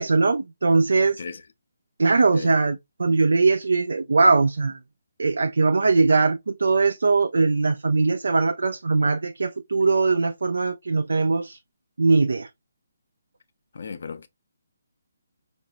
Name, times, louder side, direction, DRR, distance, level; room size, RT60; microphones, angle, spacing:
voice 1, 0.0-1.2 2.0-4.8 5.2-11.6 12.0-12.5, right 3 dB, 70° right, 0.4 m, -21 dB
voice 2, 13.7-14.3, left 5 dB, 60° left, 0.6 m, -36 dB
4.7 x 2.6 x 2.7 m
figure-of-eight pair, 145°, 0 cm